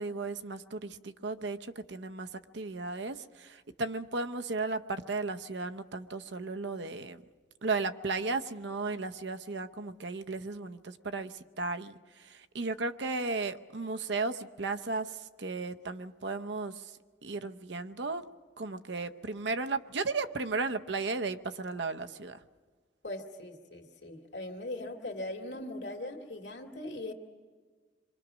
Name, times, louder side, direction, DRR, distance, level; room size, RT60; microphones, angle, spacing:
voice 1, 0.0-2.3 2.5-7.2 7.6-16.9 17.2-18.2 18.6-22.4, right 3 dB, 65° right, 9 dB, 0.8 m, -35 dB
voice 2, 23.0-27.1, left 1 dB, 65° left, 1 dB, 2.4 m, -40 dB
27.0 x 24.0 x 6.3 m, 1.5 s
head